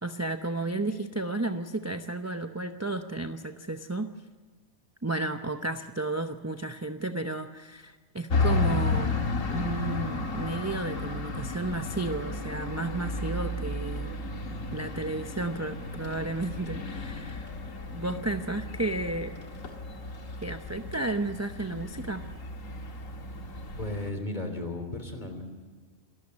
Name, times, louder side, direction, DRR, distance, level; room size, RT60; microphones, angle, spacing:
voice 1, 0.0-4.1 5.0-9.2 9.5-14.2 14.7-17.5 17.9-19.3 20.4-22.2, right 2 dB, 15° right, 6 dB, 0.5 m, -32 dB
sound 1, 8.3-24.1, left 3 dB, 70° left, 2.0 m, -33 dB
voice 2, 23.8-25.4, left 2 dB, 30° left, 6 dB, 3.4 m, -35 dB
27.0 x 13.0 x 9.7 m, 1.4 s
omnidirectional pair, 1.4 m